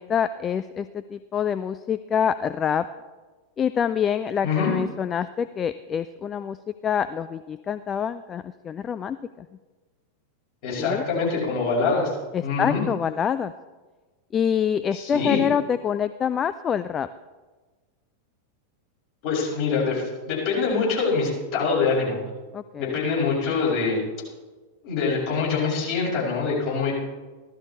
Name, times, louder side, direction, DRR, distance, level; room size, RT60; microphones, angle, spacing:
voice 1, 0.0-2.9 3.6-6.6 6.8-9.5 10.8-11.0 12.3-13.5 14.3-17.1 22.5-23.0, left 8 dB, 25° left, 12 dB, 0.3 m, -26 dB
voice 2, 10.6-12.1 12.4-12.8 14.9-15.4 19.2-22.2 22.8-24.0 24.8-26.9, left 4 dB, 45° left, -4 dB, 5.2 m, -24 dB
15.5 x 12.5 x 4.1 m, 1.3 s
figure-of-eight pair, 90°, 0 cm